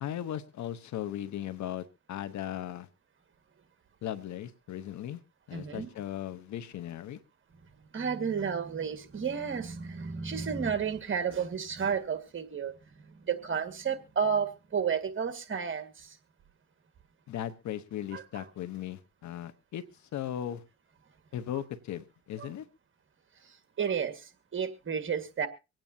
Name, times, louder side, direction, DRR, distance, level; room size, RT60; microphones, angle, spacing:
voice 1, 0.0-2.9 4.0-5.2 5.5-7.2 17.3-19.8 20.1-20.6 21.3-22.7, left 11 dB, 70° left, 12 dB, 1.0 m, -37 dB
voice 2, 5.5-5.9 7.9-12.7 13.2-16.2 18.1-18.2 22.4-22.5 23.8-25.5, right 6 dB, 40° right, 8 dB, 1.8 m, -32 dB
24.5 x 9.0 x 2.8 m, 0.28 s
cardioid pair, 90°, 30 cm